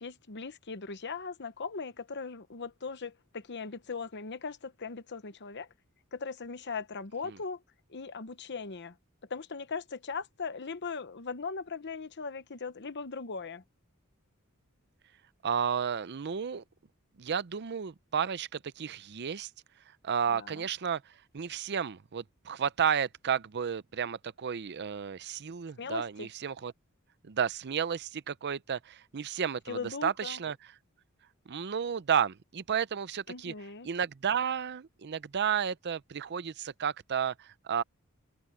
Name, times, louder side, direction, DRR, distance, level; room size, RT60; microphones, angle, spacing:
voice 1, 0.0-5.7 6.1-7.6 7.9-8.9 9.3-13.6 20.3-20.7 25.8-26.3 29.7-30.4 33.3-33.9, left 5 dB, 55° left, 1.0 m, -39 dB
voice 2, 15.4-16.6 17.2-19.5 20.0-26.7 27.2-30.7 31.5-33.5 33.8-37.8, right 7 dB, 50° right, 0.5 m, -32 dB
head